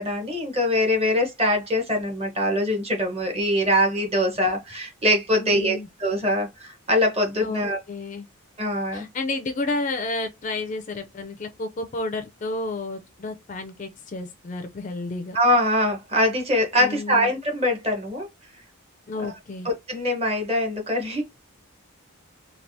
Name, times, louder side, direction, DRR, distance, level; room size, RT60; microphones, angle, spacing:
voice 1, 0.0-7.8 8.6-9.1 15.3-18.3 19.2-19.3 19.6-21.2, left 1 dB, 30° right, 1.0 m, -23 dB
voice 2, 5.3-5.9 7.4-8.3 8.9-15.4 16.8-17.3 19.1-19.7, left 2 dB, 35° left, 0.4 m, -31 dB
3.3 x 2.4 x 2.6 m
head